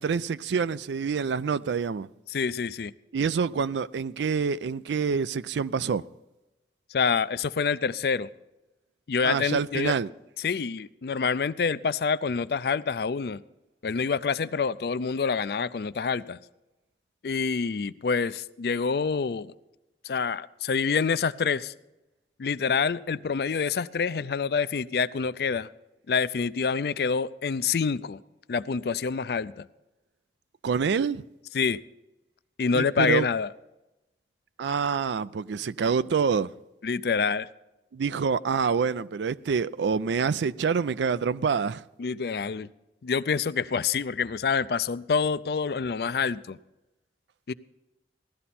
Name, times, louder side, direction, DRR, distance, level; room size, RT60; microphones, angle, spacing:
voice 1, 0.0-2.1 3.1-6.0 9.2-10.1 30.6-31.2 32.7-33.3 34.6-36.5 37.9-41.9, right 6 dB, 85° right, 0.4 m, -26 dB
voice 2, 2.3-2.9 6.9-8.3 9.1-9.9 10.4-13.4 13.8-16.4 17.2-19.5 20.0-21.7 22.4-25.7 26.1-28.2 28.5-29.7 31.5-31.8 32.6-33.5 36.8-37.5 42.0-42.7 43.0-46.6 47.5-47.6, left 5 dB, 60° left, 0.4 m, -27 dB
16.5 x 12.5 x 4.3 m
head